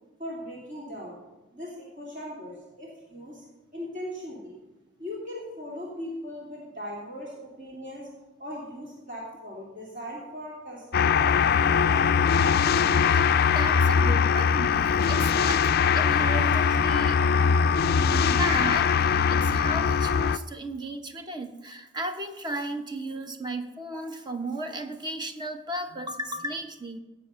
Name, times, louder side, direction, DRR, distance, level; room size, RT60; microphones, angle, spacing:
voice 1, 0.2-1.2 1.5-3.4 3.7-4.6 5.0-8.1 8.4-11.3 11.6-12.1, equal, 40° right, -4 dB, 2.8 m, -39 dB
sound 1, 10.9-20.4, left 6 dB, 50° left, 0.3 m, -22 dB
voice 2, 13.5-15.7 15.9-17.2 18.0-27.0, right 1 dB, 20° right, 6 dB, 0.9 m, -34 dB
17.0 x 7.9 x 5.7 m, 1.1 s
head